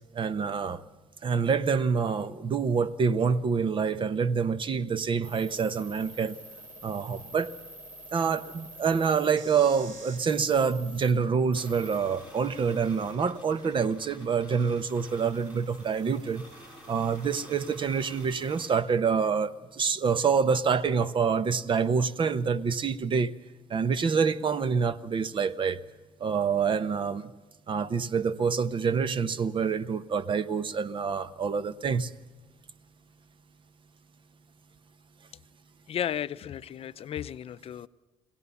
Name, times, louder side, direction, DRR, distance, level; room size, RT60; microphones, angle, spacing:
voice 1, 0.1-0.8 1.2-6.4 6.8-7.5 8.1-16.4 16.9-23.3 23.7-25.8 26.2-27.3 27.7-32.1, right 6 dB, 45° right, 1.0 m, -27 dB
sound 1, 5.2-11.1 11.5-18.7, right 1 dB, 90° right, 6.4 m, -49 dB
sound 2, 11.5-18.8, left 1 dB, 10° right, 6.9 m, -51 dB
voice 2, 35.9-37.9, left 9 dB, 50° left, 0.5 m, -34 dB
22.5 x 17.0 x 7.0 m
cardioid pair, 100°, 12 cm